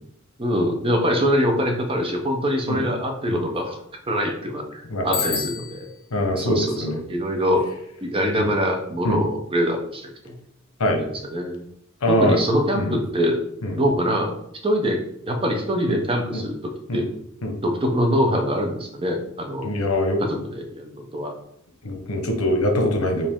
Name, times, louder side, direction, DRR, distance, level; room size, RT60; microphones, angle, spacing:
voice 1, 0.4-3.8 4.1-5.9 6.4-7.7 8.0-10.3 11.0-11.6 12.1-13.4 13.8-14.3 14.6-17.1 17.6-19.7 20.2-21.3, equal, 25° right, 3 dB, 0.7 m, -24 dB
voice 2, 4.9-5.4 6.1-7.0 8.4-8.5 9.0-9.2 10.8-11.0 12.0-12.4 12.7-13.0 13.6-13.8 15.9-16.0 16.3-16.4 16.9-17.1 17.4-17.6 19.6-20.4 21.8-23.3, left 1 dB, 85° left, 4 dB, 0.9 m, -23 dB
Bicycle bell, 5.1-6.1, left 7 dB, 45° left, 0.7 m, -29 dB
5.0 x 2.7 x 3.5 m, 0.72 s
head